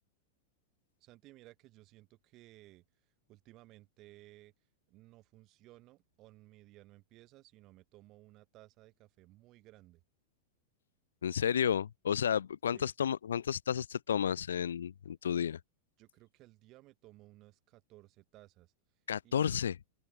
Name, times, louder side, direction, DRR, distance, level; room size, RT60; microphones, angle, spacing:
voice 1, 1.0-2.8 3.3-4.5 4.9-10.0 12.7-12.9 16.0-18.7 19.2-19.6, right 18 dB, 40° right, 7.4 m, -58 dB
voice 2, 11.2-15.6 19.1-19.8, left 8 dB, 65° left, 0.8 m, -32 dB
open air
figure-of-eight pair, 90°, 0 cm